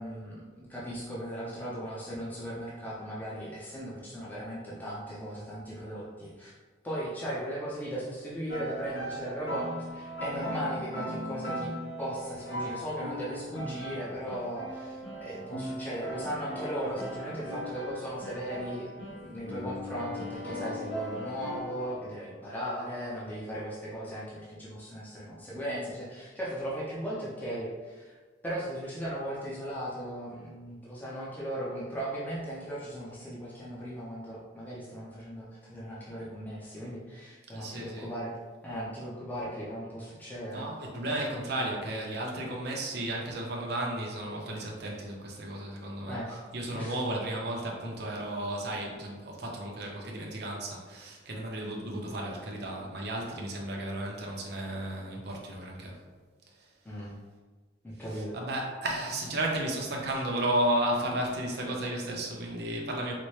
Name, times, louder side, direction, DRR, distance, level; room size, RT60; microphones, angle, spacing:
voice 1, 0.0-6.5 6.8-11.7 12.0-38.3 38.6-40.7 46.1-46.4 46.7-47.0 56.8-57.2 57.8-58.3, equal, 10° left, -8 dB, 0.5 m, -37 dB
sound 1, 8.5-21.9, equal, 75° left, 1.1 m, -38 dB
voice 2, 37.5-38.1 40.5-56.0 56.5-56.7 58.1-63.1, right 1 dB, 60° right, -1 dB, 0.6 m, -33 dB
4.2 x 2.1 x 3.1 m, 1.4 s
head